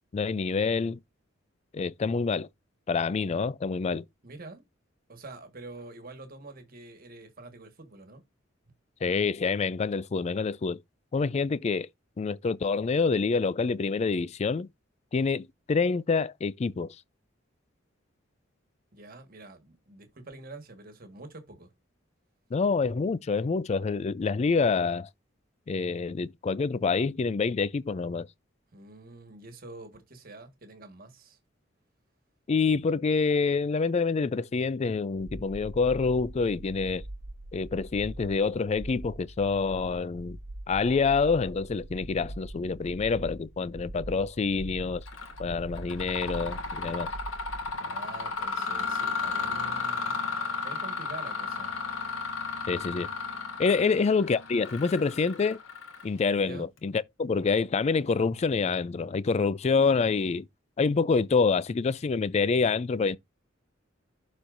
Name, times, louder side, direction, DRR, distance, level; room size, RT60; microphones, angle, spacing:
voice 1, 0.1-1.0 1.7-2.5 2.9-4.0 9.0-10.8 11.1-11.9 12.2-14.7 15.1-17.0 22.5-25.1 25.7-28.3 32.5-37.0 37.5-40.4 40.7-45.0 45.4-47.1 52.7-53.1 53.6-55.6 56.0-60.5 60.8-63.2, left 4 dB, 35° left, 0.3 m, -27 dB
voice 2, 4.2-4.6 5.1-8.2 18.9-21.7 28.7-31.4 47.8-50.2 50.6-51.8 53.7-54.0 56.4-56.7, right 2 dB, 50° right, 1.5 m, -46 dB
sound 1, 35.2-47.7, right 1 dB, 75° right, 1.0 m, -42 dB
Mechanisms, 45.1-45.4 45.8-56.3, left 4 dB, 85° left, 1.8 m, -34 dB
11.5 x 4.3 x 2.5 m
head